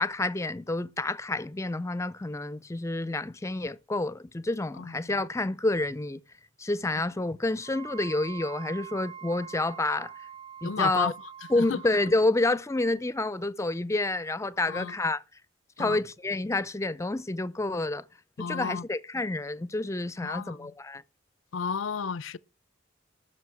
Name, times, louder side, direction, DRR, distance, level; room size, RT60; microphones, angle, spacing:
voice 1, 0.0-6.2 6.6-10.1 10.6-11.1 11.5-15.2 15.8-18.0 18.4-21.0, left 2 dB, 15° left, 0.5 m, -29 dB
voice 2, 4.8-5.1 10.6-11.1 11.6-11.8 14.7-14.9 15.8-16.0 18.4-18.8 20.2-20.7 21.5-22.4, left 5 dB, 85° left, 0.6 m, -32 dB
Wind instrument woodwind instrument, 7.6-12.1, right 9 dB, 40° right, 2.0 m, -44 dB
14.5 x 6.2 x 6.0 m
head